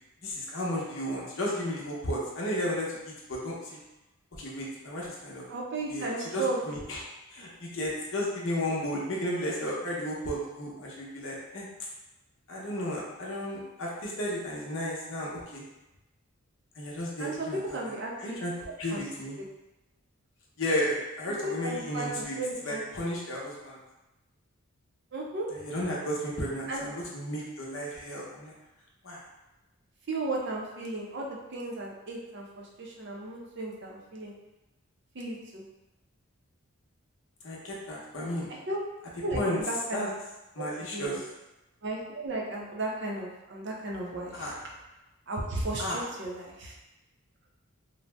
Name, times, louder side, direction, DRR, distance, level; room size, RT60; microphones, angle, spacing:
voice 1, 0.2-3.8 4.4-5.5 5.9-6.1 6.3-7.0 7.3-11.7 12.5-15.6 16.8-17.6 18.2-18.5 18.8-19.4 20.6-22.4 22.6-23.8 25.5-28.5 29.0-29.2 37.4-38.5 39.3-39.6 39.9-40.1 40.6-41.2 44.3-44.5 45.8-46.0, equal, 60° left, -4 dB, 0.7 m, -33 dB
voice 2, 5.5-6.8 17.2-18.4 18.7-19.0 19.4-19.5 21.3-22.8 25.1-25.5 26.7-27.0 30.1-34.3 35.1-35.6 38.7-38.8 39.2-40.1 40.6-40.7 40.9-41.2 41.8-44.7 45.3-46.7, right 2 dB, 50° right, -2 dB, 0.5 m, -35 dB
2.6 x 2.0 x 3.2 m, 1.0 s
head